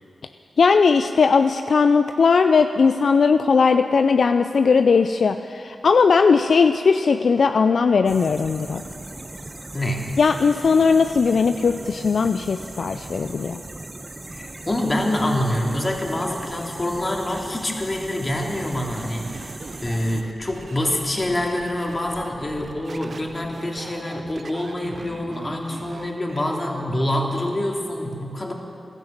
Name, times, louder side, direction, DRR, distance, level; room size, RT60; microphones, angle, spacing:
voice 1, 0.6-8.8 10.2-13.6, left 5 dB, 70° left, 8 dB, 0.4 m, -18 dB
sound 1, 8.1-20.2, right 2 dB, 35° right, 1.1 m, -38 dB
voice 2, 9.7-10.1 14.3-28.5, left 1 dB, 35° left, 0 dB, 2.7 m, -26 dB
sound 2, 18.5-26.6, right 4 dB, 60° right, 0.9 m, -41 dB
15.0 x 12.0 x 7.4 m, 2.7 s
supercardioid pair, 40°, 0 cm